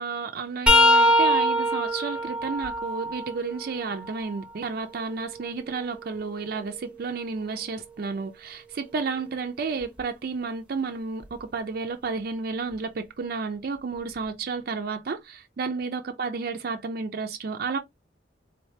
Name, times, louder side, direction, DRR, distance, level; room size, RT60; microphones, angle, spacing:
voice 1, 0.0-17.8, right 4 dB, 55° right, 0.4 m, -32 dB
sound 1, 0.7-4.4 5.0-6.9 9.8-10.0 11.2-11.4 12.7-12.8, left 1 dB, 5° right, 0.7 m, -24 dB
3.9 x 3.2 x 2.7 m
head